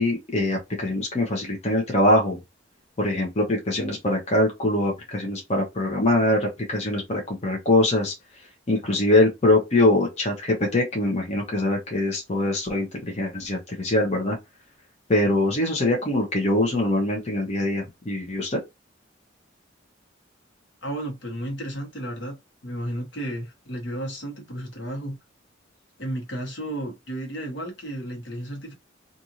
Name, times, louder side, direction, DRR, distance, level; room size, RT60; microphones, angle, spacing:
voice 1, 0.0-2.4 3.0-8.1 8.7-14.4 15.1-18.6, left 1 dB, 35° left, 0.8 m, -23 dB
voice 2, 20.8-22.4 22.6-25.2 26.0-28.7, right 1 dB, 65° left, 1.1 m, -33 dB
2.6 x 2.5 x 2.9 m
head